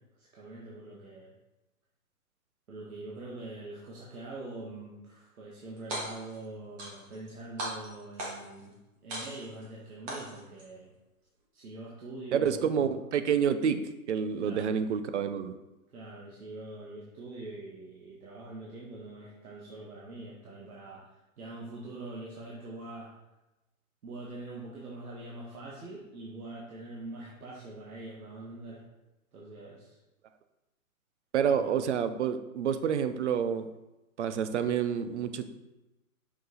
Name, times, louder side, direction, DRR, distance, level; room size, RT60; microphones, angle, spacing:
voice 1, 0.2-1.3 2.7-8.8 9.0-10.9 11.5-13.0 14.4-14.7 15.9-23.1 24.0-28.9 29.3-30.0 31.5-31.8, right 2 dB, 80° right, -4 dB, 1.7 m, -44 dB
sound 1, 5.8-6.4 6.8-7.3 7.6-8.6 9.1-9.6 10.1-10.6, right 1 dB, 20° right, 1.1 m, -38 dB
voice 2, 12.3-13.8 14.1-15.5 31.3-33.7 34.2-35.5, right 7 dB, 55° right, 10 dB, 0.6 m, -28 dB
6.0 x 5.6 x 4.0 m, 1.0 s
hypercardioid pair, 160°, 43 cm